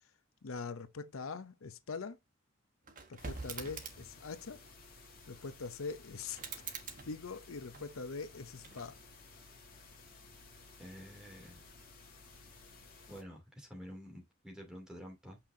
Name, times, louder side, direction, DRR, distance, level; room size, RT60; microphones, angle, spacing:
voice 1, 0.4-2.2 3.1-4.6 5.3-6.4 7.1-8.9, left 4 dB, 80° left, 0.7 m, -43 dB
sound 1, 2.8-4.2 6.3-8.1 8.6-9.3, right 5 dB, 40° right, 1.4 m, -46 dB
sound 2, 3.2-13.2, left 3 dB, 45° left, 2.1 m, -56 dB
voice 2, 10.8-11.6 13.1-15.4, equal, 5° right, 2.5 m, -49 dB
6.8 x 5.7 x 2.6 m
head